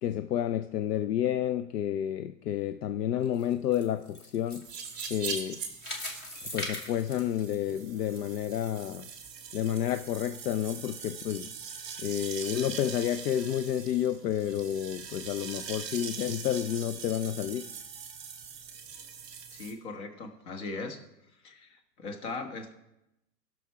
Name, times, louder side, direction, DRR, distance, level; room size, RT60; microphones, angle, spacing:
voice 1, 0.0-4.7 5.1-5.6 6.5-9.1 9.5-11.5 12.0-17.7, left 11 dB, 70° left, 0.6 m, -30 dB
sound 1, 3.2-8.2 8.6-8.7 9.3-9.4, left 1 dB, 20° left, 1.2 m, -41 dB
sound 2, 4.6-19.7, right 6 dB, 5° right, 0.4 m, -42 dB
voice 2, 19.5-21.0 21.4-22.7, left 3 dB, 40° left, 1.5 m, -39 dB
15.5 x 6.2 x 4.7 m
hypercardioid pair, 150°, 50 cm